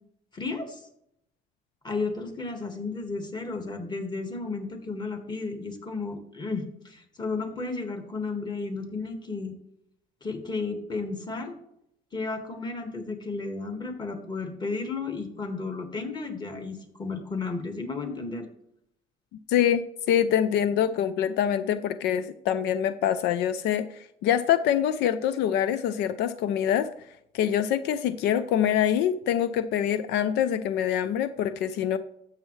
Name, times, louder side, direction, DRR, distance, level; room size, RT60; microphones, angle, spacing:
voice 1, 0.3-0.8 1.8-9.5 10.2-11.5 12.1-18.4, left 3 dB, 25° left, 5 dB, 1.7 m, -33 dB
voice 2, 19.5-26.9 27.3-32.0, left 9 dB, 80° left, 13 dB, 0.5 m, -25 dB
12.5 x 7.4 x 3.2 m, 0.76 s
cardioid pair, 110°, 17 cm